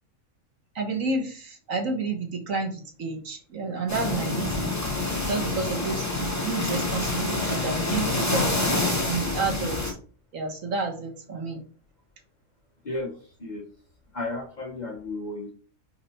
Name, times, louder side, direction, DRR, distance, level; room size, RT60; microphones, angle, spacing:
voice 1, 0.7-4.7 5.3-8.6 9.0-10.0 10.3-11.6, right 3 dB, 65° right, 2 dB, 1.6 m, -30 dB
sound 1, 3.9-9.9, left 2 dB, 10° left, 1.3 m, -27 dB
voice 2, 12.8-13.7 14.1-15.5, left 2 dB, 35° left, 2 dB, 1.1 m, -34 dB
4.8 x 4.5 x 4.4 m, 0.40 s
omnidirectional pair, 1.5 m